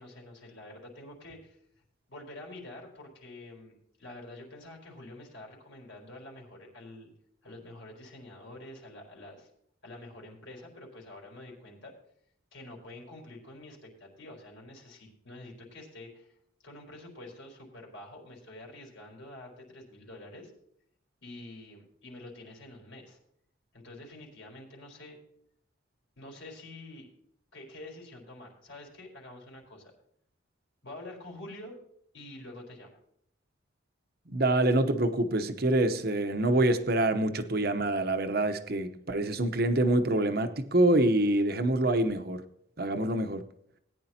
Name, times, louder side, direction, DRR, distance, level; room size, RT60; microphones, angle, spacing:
voice 1, 0.0-1.6 2.1-7.1 7.4-9.5 9.8-11.9 12.5-16.3 16.6-20.5 21.2-23.2 23.7-25.2 26.2-27.1 27.5-29.9 30.8-31.8 32.1-33.0, left 1 dB, 75° left, 4.2 m, -47 dB
voice 2, 34.3-42.4 42.8-43.4, right 1 dB, 50° right, 0.9 m, -26 dB
19.0 x 10.0 x 2.9 m
head